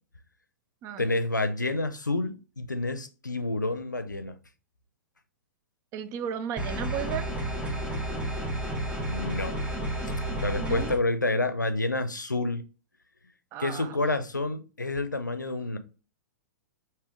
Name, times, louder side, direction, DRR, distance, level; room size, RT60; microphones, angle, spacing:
voice 1, 1.0-4.3 9.1-9.5 10.0-10.1 10.4-12.6 13.6-15.8, left 2 dB, 85° left, 0.5 m, -29 dB
voice 2, 5.9-7.3 10.6-10.9 13.5-13.9, right 8 dB, 30° right, 0.4 m, -34 dB
sound 1, 6.6-11.0, right 1 dB, 10° right, 0.9 m, -31 dB
3.4 x 2.7 x 3.5 m
figure-of-eight pair, 105°, 10 cm